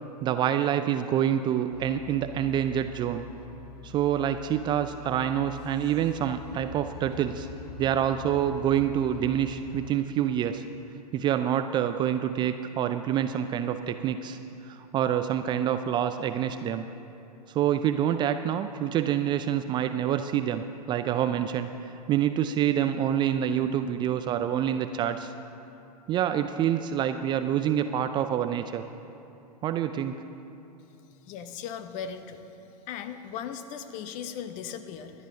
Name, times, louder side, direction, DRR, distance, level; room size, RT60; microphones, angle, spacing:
voice 1, 0.2-3.3 3.8-7.5 7.8-10.6 11.1-14.4 14.6-16.9 17.5-25.3 26.1-28.8 29.6-30.2, right 10 dB, 20° right, 9 dB, 0.4 m, -27 dB
sound 1, 1.7-9.9, left 7 dB, 70° left, 0.6 m, -45 dB
voice 2, 31.3-32.4 32.9-35.1, left 8 dB, 35° left, 9 dB, 0.9 m, -37 dB
24.0 x 11.0 x 2.7 m, 2.8 s
figure-of-eight pair, 100°, 21 cm